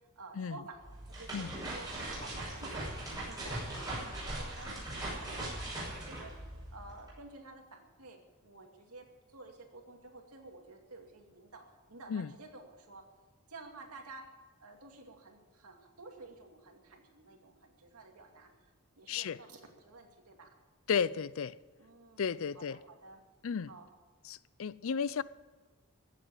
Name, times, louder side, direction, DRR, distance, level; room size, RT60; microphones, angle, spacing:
voice 1, 0.2-0.8 1.1-13.1 13.5-14.3 14.6-18.5 19.0-20.5 21.8-23.2 23.7-23.9, right 3 dB, 85° right, 2.4 m, -52 dB
sound 1, 0.7-7.1, right 1 dB, 15° right, 6.0 m, -40 dB
voice 2, 19.1-19.4 20.9-21.6 22.2-22.8 23.4-23.7 24.2-25.2, left 6 dB, 65° left, 0.4 m, -33 dB
14.5 x 7.8 x 9.1 m
head